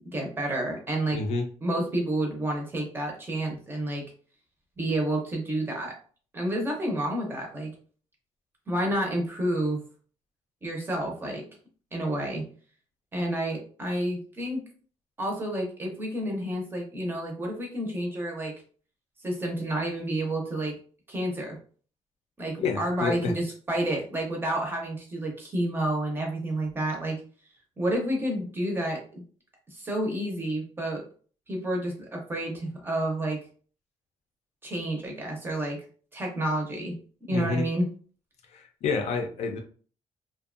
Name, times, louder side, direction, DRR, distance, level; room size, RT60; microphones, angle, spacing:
voice 1, 0.1-1.2 1.6-4.0 4.8-5.9 6.3-7.7 8.7-9.8 10.6-11.4 11.9-12.5 13.1-14.6 15.2-18.5 19.2-20.8 21.1-21.6 22.4-27.2 27.8-29.0 29.7-31.0 31.5-33.4 34.6-35.8 36.1-36.9 37.3-37.9, right 1 dB, 20° right, 0 dB, 0.5 m, -29 dB
voice 2, 1.1-1.5 22.6-23.3 37.3-37.7 38.5-39.6, left 4 dB, 65° left, 4 dB, 0.5 m, -29 dB
2.5 x 2.2 x 2.4 m, 0.43 s
cardioid pair, 180°, 12 cm